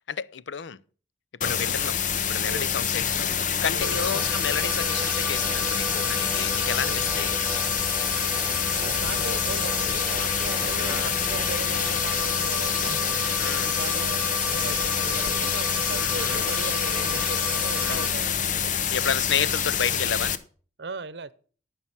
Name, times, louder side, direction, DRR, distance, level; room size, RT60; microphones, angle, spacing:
voice 1, 0.1-0.8 1.4-3.4 3.6-7.4 10.8-11.1 13.4-13.7 15.9-16.4 17.8-18.3 18.9-20.3, left 7 dB, 85° left, 0.5 m, -31 dB
sound 1, 1.4-20.4, left 8 dB, 45° left, 0.8 m, -26 dB
sound 2, 3.8-18.1, right 1 dB, 5° right, 0.7 m, -34 dB
voice 2, 8.7-13.3 13.8-18.7 20.8-21.3, right 3 dB, 65° right, 0.8 m, -38 dB
13.5 x 5.8 x 7.2 m
head